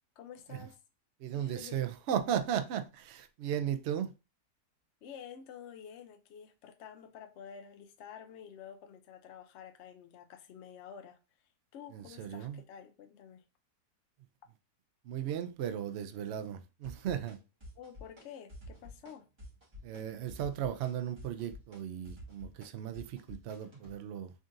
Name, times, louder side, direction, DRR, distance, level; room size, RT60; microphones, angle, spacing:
voice 1, 0.2-0.8 1.3-1.8 5.0-11.2 11.7-13.4 17.8-19.3, left 8 dB, 65° left, 0.7 m, -50 dB
voice 2, 1.2-4.1 11.9-12.6 15.0-17.4 19.8-24.3, right 9 dB, 90° right, 0.5 m, -36 dB
sound 1, 16.8-17.4 17.6-18.2 18.5-19.1 19.4-20.0 20.3-23.9, left 1 dB, 15° right, 1.6 m, -49 dB
3.8 x 3.7 x 2.6 m
omnidirectional pair, 1.7 m